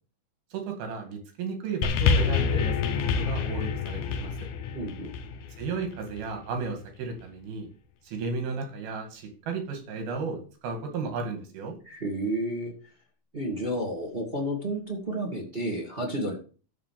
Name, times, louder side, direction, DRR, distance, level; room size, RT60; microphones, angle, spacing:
voice 1, 0.5-4.4 5.6-7.7 8.0-11.8, right 4 dB, 85° right, 4 dB, 4.0 m, -34 dB
sound 1, 1.8-6.4 7.2-7.3, left 6 dB, 70° left, 2.1 m, -27 dB
voice 2, 4.7-5.1 11.9-12.7 13.3-16.3, right 1 dB, 20° right, 0 dB, 1.8 m, -31 dB
12.5 x 4.4 x 7.5 m, 0.38 s
omnidirectional pair, 4.2 m